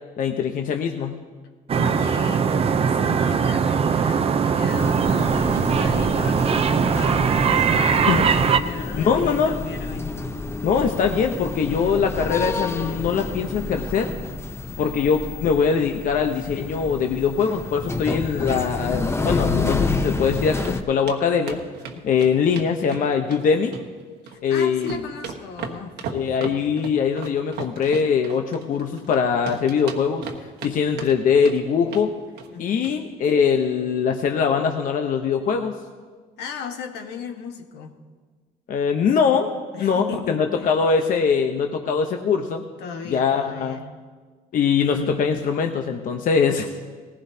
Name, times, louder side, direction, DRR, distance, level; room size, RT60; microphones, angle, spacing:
voice 1, 0.2-1.2 8.1-8.3 9.1-9.5 10.6-14.1 14.8-21.6 22.0-23.8 24.4-25.0 26.1-30.3 30.6-32.1 32.6-35.8 38.7-39.5 39.8-42.6 43.1-43.8 44.5-46.7, left 6 dB, 55° left, 4 dB, 0.9 m, -22 dB
voice 2, 1.7-8.1 8.6-10.1 14.6-15.1 21.9-22.2 24.2-26.0 32.5-32.8 36.4-37.9 39.7-40.7 42.8-43.9, left 6 dB, 80° left, 4 dB, 1.4 m, -37 dB
sound 1, 1.7-8.6, right 6 dB, 35° right, 0.6 m, -20 dB
sound 2, 4.7-20.8, left 3 dB, 15° left, 0.7 m, -29 dB
sound 3, 19.8-20.3 20.6-20.8 21.1-21.2 21.5-23.4 23.7-24.4 24.7-29.2 29.5-30.7 31.0-31.6 31.9-32.1 32.4-32.6 32.8-33.0 33.3-33.4, right 6 dB, 80° right, 1.3 m, -35 dB
18.5 x 15.5 x 2.8 m, 1.5 s
cardioid pair, 110°, 17 cm